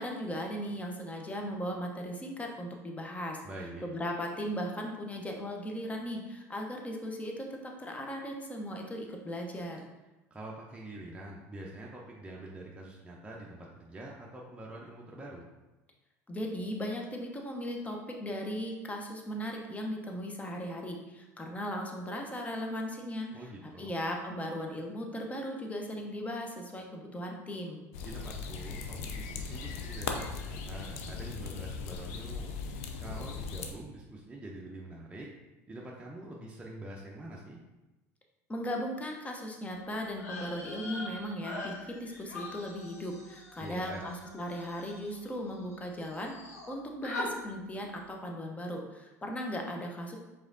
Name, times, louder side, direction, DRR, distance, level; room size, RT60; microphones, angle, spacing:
voice 1, 0.0-3.4 3.8-9.8 16.3-27.8 38.5-46.3 46.7-50.2, equal, 15° left, 1 dB, 0.8 m, -37 dB
voice 2, 3.4-3.9 10.3-15.4 23.3-24.0 28.0-35.3 35.7-37.6 43.6-44.1, right 1 dB, 15° right, -3 dB, 0.7 m, -45 dB
sound 1, 27.9-33.7, left 5 dB, 70° left, 0.5 m, -38 dB
sound 2, 40.1-45.8 46.0-46.7 47.0-47.3, left 2 dB, 85° left, 0.9 m, -43 dB
4.9 x 3.6 x 2.7 m, 1.1 s
hypercardioid pair, 75°, 8 cm